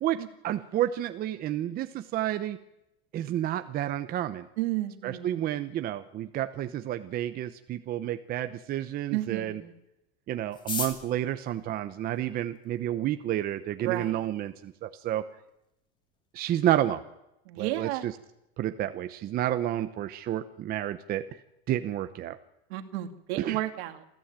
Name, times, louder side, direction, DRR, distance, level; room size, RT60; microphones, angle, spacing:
voice 1, 0.0-2.6 3.1-4.5 5.0-9.6 10.3-15.2 16.3-17.0 17.6-18.1 18.6-21.2 21.7-22.4 23.4-23.6, right 12 dB, 25° right, 9 dB, 0.9 m, -30 dB
voice 2, 4.6-5.4 9.1-9.7 13.8-14.3 17.5-18.1 22.7-24.0, right 15 dB, 65° right, 8 dB, 2.5 m, -32 dB
sound 1, 10.5-12.8 13.6-13.7 13.9-14.0 14.2-14.7 15.0-15.1 15.3-15.7 16.1-16.3 16.6-16.9, left 4 dB, 15° left, 2.7 m, -38 dB
27.5 x 15.0 x 9.0 m, 0.87 s
supercardioid pair, 165°, 34 cm